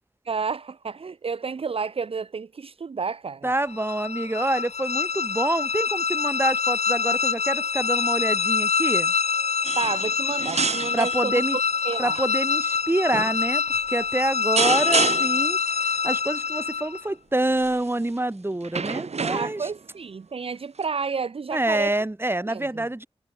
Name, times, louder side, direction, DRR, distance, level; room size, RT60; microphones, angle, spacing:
voice 1, 0.3-3.5 9.8-11.4 11.8-12.2 19.3-21.9 22.5-22.9, right 5 dB, 60° right, 0.6 m, -30 dB
voice 2, 3.4-9.1 10.9-11.6 12.0-15.6 16.0-19.7 21.5-23.1, right 1 dB, 20° right, 2.0 m, -26 dB
sound 1, 3.7-17.1, left 6 dB, 90° left, 0.8 m, -25 dB
sound 2, 9.6-10.1 10.4-11.2 11.9-12.3 13.1-13.4 14.6-15.5 17.6-17.9 18.6-19.8 20.8-20.9, right 5 dB, 80° right, 1.3 m, -27 dB
wide cardioid pair, 80°, 11 cm